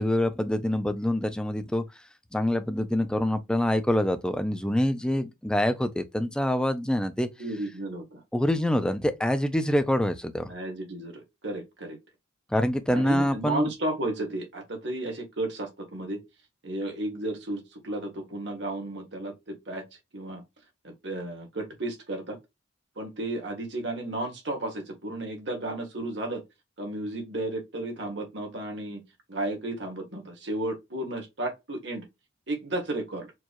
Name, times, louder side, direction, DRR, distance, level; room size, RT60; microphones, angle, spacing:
voice 1, 0.0-1.8 2.3-7.3 8.3-10.5 12.5-13.7, left 1 dB, 5° left, 0.5 m, -25 dB
voice 2, 7.4-8.2 10.5-12.0 12.9-16.2 16.6-19.9 20.1-20.4 20.8-22.4 23.0-26.4 26.8-29.0 29.3-32.1 32.5-33.3, right 1 dB, 60° right, 1.6 m, -33 dB
4.6 x 2.9 x 2.5 m
head